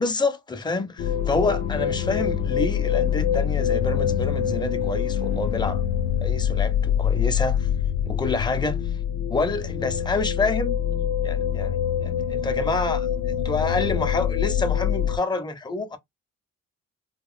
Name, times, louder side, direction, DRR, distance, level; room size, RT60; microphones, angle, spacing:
voice 1, 0.0-5.8 6.2-7.7 8.1-8.8 9.3-10.8 11.2-16.0, left 3 dB, 15° left, 0.6 m, -28 dB
sound 1, 1.0-15.2, left 9 dB, 60° left, 0.5 m, -25 dB
2.9 x 2.4 x 2.4 m
cardioid pair, 90°, 30 cm